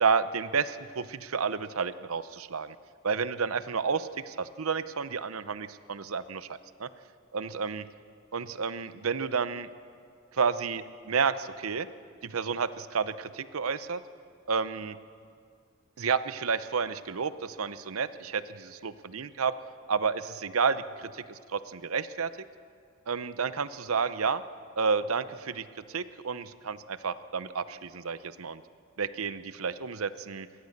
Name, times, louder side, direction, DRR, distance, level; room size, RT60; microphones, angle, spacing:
voice 1, 0.0-2.7 3.0-6.5 6.8-6.9 7.3-7.8 8.3-9.7 10.3-11.9 12.2-14.0 14.5-15.0 16.0-19.5 19.9-22.3 23.1-24.4 24.8-28.6 29.0-30.5, right 5 dB, 80° right, 14 dB, 0.7 m, -30 dB
21.5 x 18.0 x 6.7 m, 2.2 s
head